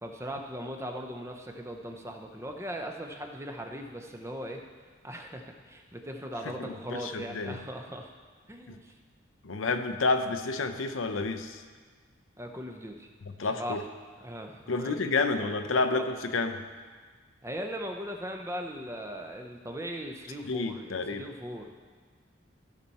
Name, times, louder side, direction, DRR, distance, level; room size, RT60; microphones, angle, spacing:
voice 1, 0.0-4.6 5.0-8.1 8.5-8.9 12.4-13.1 13.4-13.8 14.2-15.0 15.3-15.5 15.9-16.1 17.4-21.8, equal, 15° right, 3 dB, 0.7 m, -39 dB
voice 2, 6.6-7.6 8.7-8.8 9.4-11.6 13.2-13.8 14.7-16.6 20.5-21.2, left 3 dB, 85° left, 8 dB, 0.7 m, -30 dB
15.0 x 5.9 x 4.2 m, 1.5 s
head